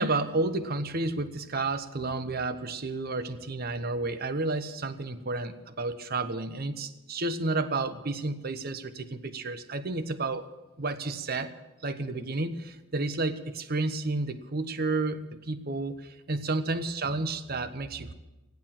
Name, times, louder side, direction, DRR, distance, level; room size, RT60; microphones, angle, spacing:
voice 1, 0.0-10.5 10.8-11.5 11.8-15.9 16.3-18.1, right 2 dB, 50° right, 11 dB, 0.9 m, -31 dB
15.5 x 10.5 x 7.5 m, 1.1 s
head